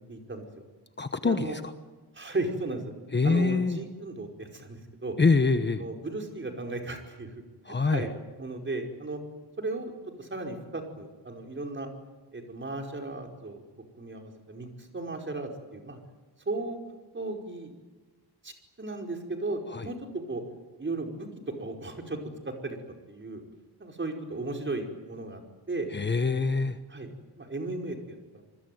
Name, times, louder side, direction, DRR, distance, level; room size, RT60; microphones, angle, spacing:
voice 1, 0.1-0.5 1.2-1.6 2.2-2.9 3.2-5.2 5.8-7.3 7.7-8.1 8.4-9.2 9.6-9.9 10.2-11.9 12.3-13.6 14.0-16.0 16.5-16.8 17.1-17.7 18.4-20.4 20.8-21.3 21.6-22.2 22.6-22.8 23.1-23.4 23.8-25.4 25.7-25.9 26.9-27.1 27.4-28.2, right 2 dB, 30° right, 3 dB, 5.2 m, -35 dB
voice 2, 1.0-1.6 3.1-3.8 5.2-5.8 7.6-8.0 19.7-19.9 25.9-26.8, left 4 dB, 25° left, 9 dB, 1.2 m, -25 dB
27.5 x 21.0 x 9.4 m, 1.2 s
wide cardioid pair, 140°, 41 cm